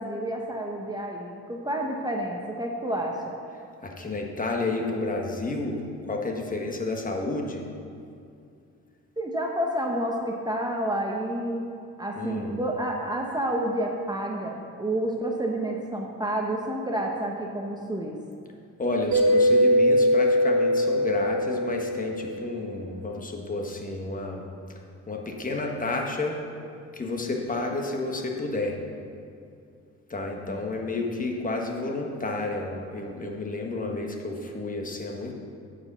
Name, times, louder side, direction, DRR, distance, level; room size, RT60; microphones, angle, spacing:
voice 1, 0.0-3.4 9.2-11.7 12.0-18.2 30.5-30.7, right 1 dB, 15° right, 0 dB, 0.9 m, -29 dB
voice 2, 3.8-7.6 12.2-12.5 18.8-24.5 25.1-26.4 26.9-28.8 30.1-35.3, left 2 dB, 25° left, 1 dB, 1.3 m, -30 dB
Mallet percussion, 19.1-22.6, equal, 70° right, 1.6 m, -22 dB
9.3 x 5.2 x 6.8 m, 2.4 s
cardioid pair, 90°, 30 cm